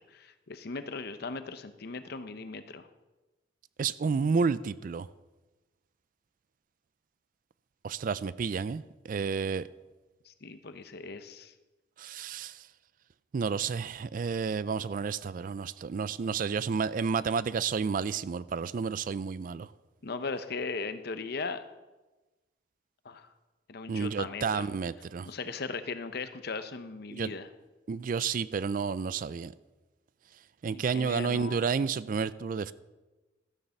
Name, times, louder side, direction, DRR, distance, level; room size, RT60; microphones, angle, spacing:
voice 1, 0.1-2.9 10.2-11.5 20.0-21.6 23.0-23.3 23.7-24.7 25.2-27.5 30.7-31.6, left 4 dB, 55° left, 0.7 m, -38 dB
voice 2, 3.8-5.1 7.8-9.7 12.0-12.7 13.3-19.7 23.9-25.3 27.1-27.3 27.9-29.5 30.6-32.7, right 5 dB, 45° right, 0.3 m, -31 dB
13.0 x 6.6 x 7.0 m
head